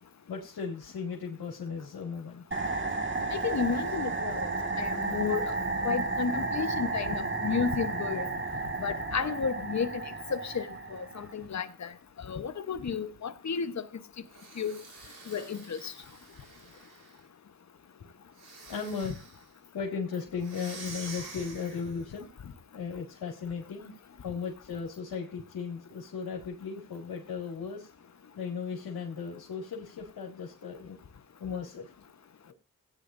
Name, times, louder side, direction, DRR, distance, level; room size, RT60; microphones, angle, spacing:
voice 1, 0.3-2.4 18.7-19.2 19.7-22.3 22.7-23.9 24.2-27.9 28.4-31.0 31.4-31.9 32.4-32.5, left 6 dB, 80° left, 2.3 m, -36 dB
sound 1, 2.5-11.3, right 3 dB, 30° right, 2.0 m, -32 dB
voice 2, 3.3-4.5 4.8-5.5 5.8-8.3 8.8-10.0 10.3-11.9 12.2-13.8 14.6-14.8 15.3-15.9, left 6 dB, 50° left, 1.1 m, -32 dB
sound 2, 14.3-17.2 18.3-19.5 20.4-22.1, right 4 dB, 90° right, 4.1 m, -47 dB
17.0 x 9.7 x 2.6 m
cardioid pair, 70°, 37 cm